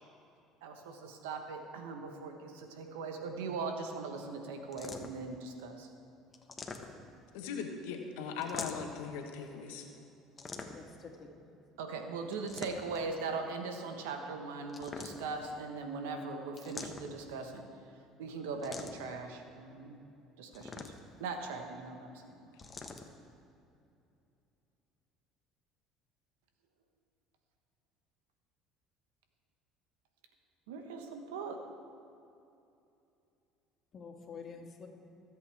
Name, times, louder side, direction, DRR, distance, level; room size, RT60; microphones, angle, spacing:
voice 1, 0.6-5.9 11.8-17.7 18.2-20.0 20.4-20.9 21.2-22.5 30.7-31.6, right 4 dB, 85° right, 5 dB, 1.3 m, -40 dB
sound 1, 4.7-5.3 6.3-7.2 8.4-9.0 10.4-11.0 12.3-13.1 14.7-15.5 16.6-17.3 18.6-19.2 20.5-21.2 22.6-23.1, left 3 dB, 25° left, 1.3 m, -44 dB
voice 2, 7.3-9.9, left 6 dB, 80° left, 4 dB, 1.4 m, -39 dB
voice 3, 10.7-11.6 33.9-34.9, left 5 dB, 40° left, 1 dB, 2.3 m, -48 dB
24.5 x 8.2 x 3.6 m, 2.7 s
supercardioid pair, 80°, 0 cm